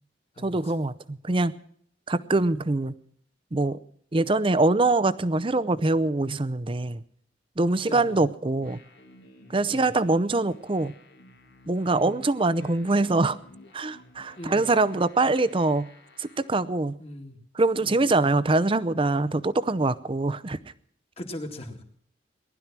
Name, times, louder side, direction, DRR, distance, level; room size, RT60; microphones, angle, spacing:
voice 1, 0.4-1.5 2.1-2.9 3.5-3.8 4.1-7.0 7.6-8.8 9.5-10.9 11.7-13.4 13.7-15.9 16.2-17.0 17.5-20.6, right 2 dB, 30° right, 15 dB, 0.6 m, -24 dB
voice 2, 7.9-8.2 9.7-9.8 11.9-12.2 14.4-14.7 17.0-17.4 17.8-18.0 21.2-21.8, left 1 dB, 35° left, 4 dB, 2.1 m, -39 dB
sound 1, 8.6-16.6, left 2 dB, 80° left, 2.6 m, -53 dB
19.0 x 12.0 x 6.0 m, 0.65 s
head